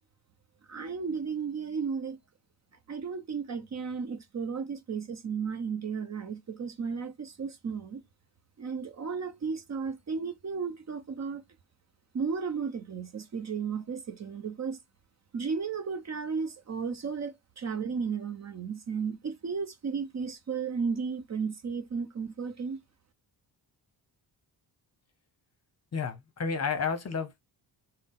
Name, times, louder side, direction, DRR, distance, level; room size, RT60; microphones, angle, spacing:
voice 1, 0.7-2.2 2.9-8.0 8.6-11.4 12.1-14.8 15.3-22.8, right 5 dB, 40° right, 0.8 m, -34 dB
voice 2, 25.9-27.4, left 5 dB, 35° left, 0.8 m, -31 dB
6.0 x 2.1 x 3.6 m
wide cardioid pair, 145°, 42 cm